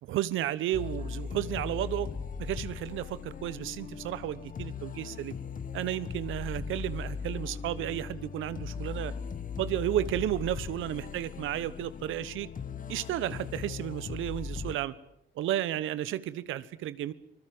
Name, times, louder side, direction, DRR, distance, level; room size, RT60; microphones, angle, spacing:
voice 1, 0.0-2.1 2.4-5.3 5.7-9.1 9.6-12.5 12.9-14.9 15.3-17.1, right 12 dB, 85° right, 16 dB, 1.2 m, -33 dB
sound 1, 0.7-14.8, left 6 dB, 40° left, 1.3 m, -39 dB
24.5 x 20.5 x 7.9 m, 0.78 s
cardioid pair, 90°, 20 cm